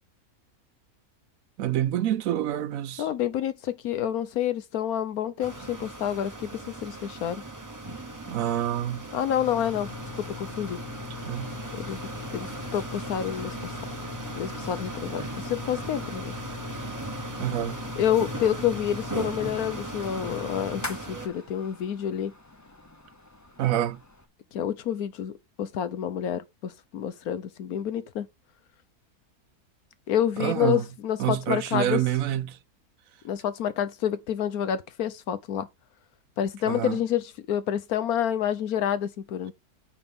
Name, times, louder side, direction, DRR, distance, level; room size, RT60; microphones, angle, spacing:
voice 1, 1.6-3.1 8.3-9.1 11.2-11.6 17.4-17.8 23.6-24.0 30.4-30.8 31.2-32.6 36.7-37.0, right 12 dB, 70° right, 1.0 m, -27 dB
voice 2, 3.0-7.4 9.1-9.9 10.4-10.8 11.7-12.0 12.3-13.7 14.4-16.4 18.0-22.3 24.5-28.3 30.1-32.0 33.2-35.7 36.4-39.5, left 10 dB, 75° left, 1.3 m, -28 dB
sound 1, 5.4-21.3, right 2 dB, 15° right, 1.1 m, -38 dB
sound 2, 9.4-24.3, left 6 dB, 15° left, 0.7 m, -42 dB
9.2 x 6.9 x 3.6 m
omnidirectional pair, 1.6 m